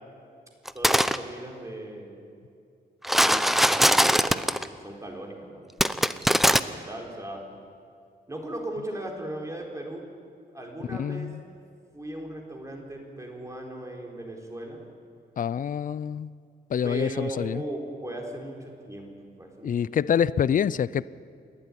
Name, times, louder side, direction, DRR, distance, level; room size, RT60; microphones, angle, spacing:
sound 1, 0.7-1.2 3.0-4.7 5.8-6.6, equal, ahead, 0.6 m, -21 dB
voice 1, 0.7-2.3 3.2-7.4 8.3-10.0 10.5-11.3 11.9-14.8 16.8-20.1, right 1 dB, 15° right, 0 dB, 4.2 m, -38 dB
voice 2, 10.9-11.4 15.4-16.3 16.7-17.6 19.6-21.1, left 8 dB, 50° left, 19 dB, 0.5 m, -26 dB
28.0 x 12.5 x 9.9 m, 2.3 s
wide cardioid pair, 115°, 18 cm